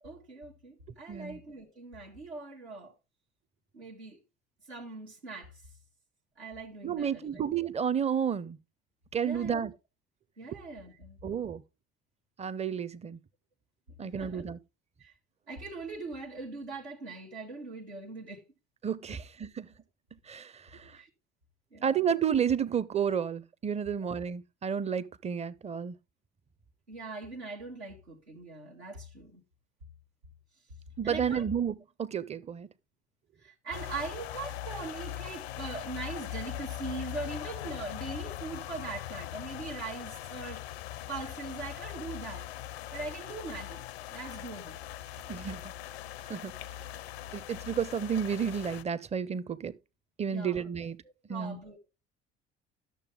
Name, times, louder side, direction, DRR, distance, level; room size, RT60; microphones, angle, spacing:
voice 1, 0.0-2.9 3.7-4.2 4.7-5.6 6.4-7.4 9.2-9.6 10.4-11.2 14.0-14.4 15.0-15.1 15.5-18.4 20.9-21.1 21.7-22.1 26.9-29.4 31.0-31.5 33.4-42.5 42.9-43.8 44.1-44.8 50.3-50.7 51.0-51.8, right 3 dB, 85° right, 1.3 m, -41 dB
voice 2, 1.1-1.4 6.8-8.6 9.1-9.7 11.2-11.6 12.4-13.2 14.0-14.6 18.8-19.7 20.3-21.0 21.8-26.0 31.0-32.7 45.3-45.6 46.3-46.5 47.3-49.7 50.2-51.0 51.3-51.6, right 7 dB, 20° right, 0.6 m, -31 dB
sound 1, 33.7-48.8, left 13 dB, 75° left, 0.6 m, -41 dB
11.5 x 6.7 x 3.7 m
figure-of-eight pair, 55°, 32 cm